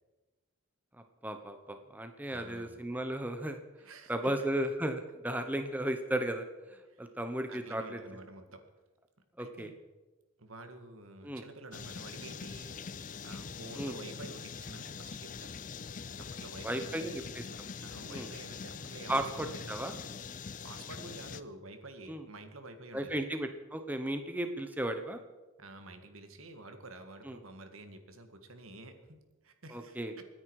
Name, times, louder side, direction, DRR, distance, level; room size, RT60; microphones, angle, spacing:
voice 1, 1.2-3.6 4.1-6.4 6.7-8.0 9.4-9.7 11.2-11.4 13.8-14.0 16.6-17.4 18.1-18.3 19.1-19.9 22.1-22.2 22.9-25.2 27.2-27.4 29.7-30.1, right 1 dB, 10° right, 7 dB, 0.8 m, -35 dB
voice 2, 2.3-2.8 3.8-4.5 6.9-7.0 7.5-8.6 9.4-9.8 10.4-12.8 13.2-15.5 16.2-17.2 17.8-19.8 20.6-23.3 25.6-29.2 29.4-30.3, right 2 dB, 80° right, 7 dB, 1.8 m, -49 dB
sound 1, 11.7-21.4, left 5 dB, 40° left, 0.5 m, -43 dB
25.5 x 9.8 x 4.8 m, 1.2 s
head